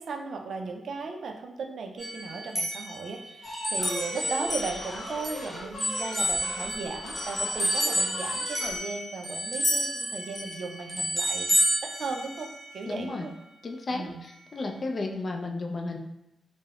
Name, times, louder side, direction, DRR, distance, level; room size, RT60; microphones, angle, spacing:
voice 1, 0.0-11.5 11.8-12.5 12.7-13.3 13.9-14.2, right 4 dB, 70° right, 3 dB, 0.3 m, -36 dB
sound 1, 2.0-5.4 5.8-12.7, equal, 5° left, 1.0 m, -30 dB
sound 2, 3.4-8.8, left 1 dB, 90° left, 0.8 m, -39 dB
voice 2, 12.9-13.3 13.6-16.0, left 2 dB, 50° left, 3 dB, 0.4 m, -33 dB
3.4 x 2.0 x 2.2 m, 0.85 s
cardioid pair, 55°, 0 cm